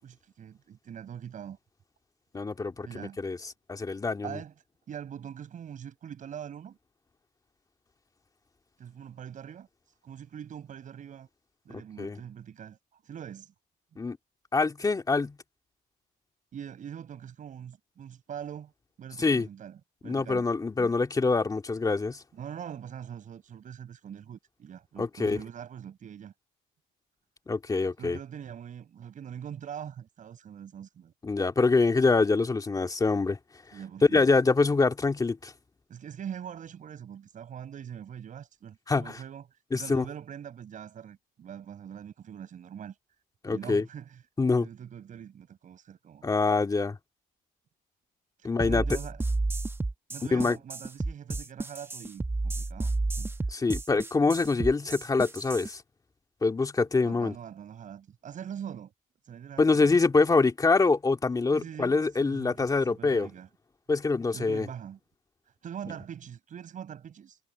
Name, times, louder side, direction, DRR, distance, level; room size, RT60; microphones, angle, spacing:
voice 1, 0.0-1.6 2.8-3.3 4.2-4.5 4.9-6.8 8.8-9.7 10.0-11.3 11.7-12.8 13.0-13.5 16.5-18.7 19.0-20.5 20.8-20.9 22.3-26.3 28.0-31.1 33.7-34.3 35.9-39.5 39.7-42.9 43.5-44.2 44.6-46.2 48.6-49.2 50.1-53.3 57.0-58.9 59.3-59.9 61.5-63.5 64.3-65.0 65.6-67.4, right 8 dB, 50° right, 5.8 m, -43 dB
voice 2, 2.3-3.4 3.7-4.4 11.7-12.2 14.0-14.2 14.5-15.4 19.2-19.5 20.0-22.2 25.0-25.4 27.5-28.2 31.2-33.4 34.1-35.5 38.9-39.2 39.7-40.0 43.4-43.8 44.4-44.7 46.2-47.0 48.4-48.8 50.3-50.6 53.5-55.8 56.4-57.3 59.6-63.3 63.9-64.7, left 3 dB, 20° left, 2.3 m, -25 dB
sound 1, 48.6-55.7, right 2 dB, 15° right, 1.0 m, -31 dB
cardioid pair, 110°, 17 cm